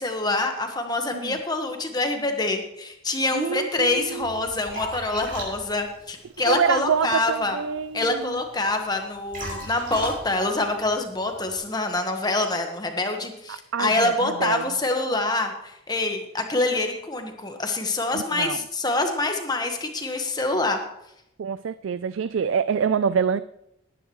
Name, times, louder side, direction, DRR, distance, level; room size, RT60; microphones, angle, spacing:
voice 1, 0.0-7.6 7.9-20.8, left 2 dB, 20° left, 5 dB, 1.3 m, -26 dB
voice 2, 3.3-4.3 6.5-8.4 13.5-14.6 18.1-18.6 21.4-23.4, right 7 dB, 75° right, 14 dB, 0.4 m, -26 dB
Liquid, 3.8-11.6, equal, 45° right, 5.6 m, -39 dB
19.0 x 10.0 x 3.1 m, 0.81 s
head